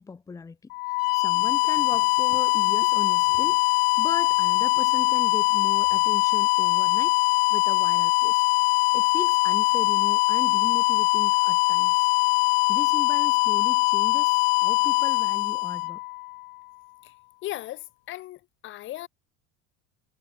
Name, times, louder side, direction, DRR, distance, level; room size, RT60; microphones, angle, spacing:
voice 1, 0.0-7.1 7.5-8.4 8.9-12.1 12.7-16.0, left 4 dB, 10° left, 1.0 m, -38 dB
sound 1, 0.7-16.5, left 27 dB, 90° left, 0.5 m, -22 dB
voice 2, 17.4-19.1, left 15 dB, 40° left, 1.2 m, -37 dB
cardioid pair, 145°, 29 cm